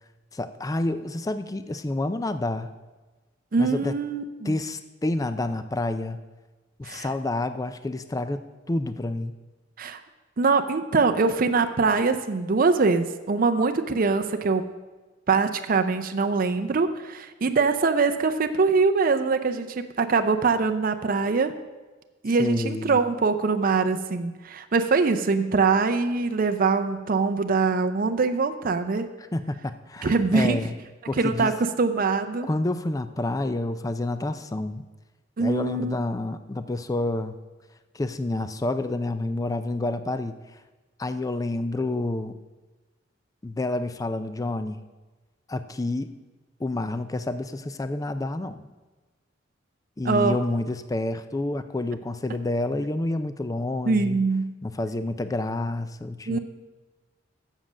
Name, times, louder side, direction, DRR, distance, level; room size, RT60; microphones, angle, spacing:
voice 1, 0.3-2.7 3.6-3.9 4.4-6.2 6.8-8.4 8.7-9.3 22.4-23.0 29.3-30.7 31.1-31.5 32.4-34.8 35.4-37.4 37.9-40.3 41.0-42.4 43.4-44.8 45.5-46.1 46.6-48.7 50.0-54.2 54.6-56.4, left 2 dB, 20° left, 11 dB, 0.4 m, -28 dB
voice 2, 3.5-4.5 6.8-7.1 9.8-10.0 10.4-14.7 15.3-21.5 22.2-29.1 30.0-30.6 31.2-32.5 35.4-36.0 50.1-50.4 53.9-54.5 56.3-56.4, right 4 dB, 45° right, 7 dB, 0.5 m, -23 dB
7.5 x 7.2 x 6.2 m, 1.2 s
head